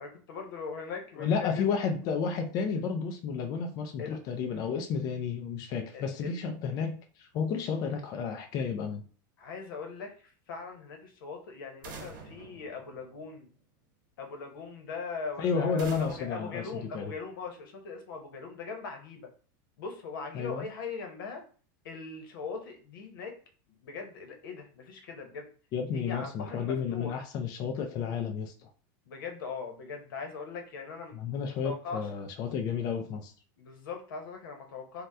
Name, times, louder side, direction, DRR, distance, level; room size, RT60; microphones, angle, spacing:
voice 1, 0.0-1.7 4.0-4.2 5.9-6.4 9.4-13.5 14.2-19.3 19.8-21.4 21.8-23.4 23.8-25.5 25.9-27.2 29.1-31.2 31.6-32.1 33.6-35.1, left 5 dB, 90° left, 4 dB, 0.9 m, -40 dB
voice 2, 1.2-9.0 15.4-17.1 20.3-20.7 25.7-28.7 31.1-33.3, left 6 dB, 35° left, 5 dB, 0.4 m, -32 dB
sound 1, 11.8-13.6 15.8-17.5, right 4 dB, 80° right, 0.9 m, -48 dB
2.8 x 2.1 x 3.4 m, 0.41 s
supercardioid pair, 150°, 11 cm